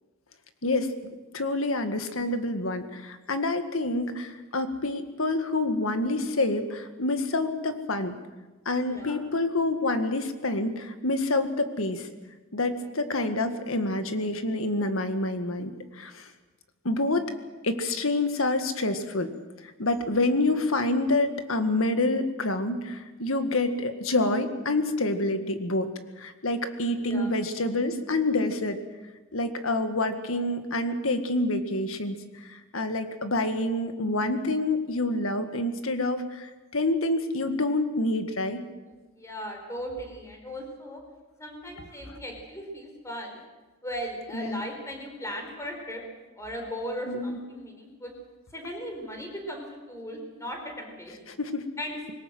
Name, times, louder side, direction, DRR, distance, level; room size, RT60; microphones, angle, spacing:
voice 1, 0.6-8.2 8.7-12.1 12.5-16.3 16.8-17.3 17.6-19.3 19.6-25.9 26.2-28.8 29.3-38.6 44.3-44.6 47.1-47.4 51.3-51.6, left 2 dB, 75° left, 8 dB, 1.8 m, -27 dB
voice 2, 8.8-9.2 26.9-27.3 38.9-41.0 41.4-43.4 43.8-46.0 46.4-48.1 48.5-51.3 51.8-52.0, equal, 15° left, 3 dB, 4.8 m, -37 dB
21.5 x 19.0 x 7.8 m, 1.2 s
head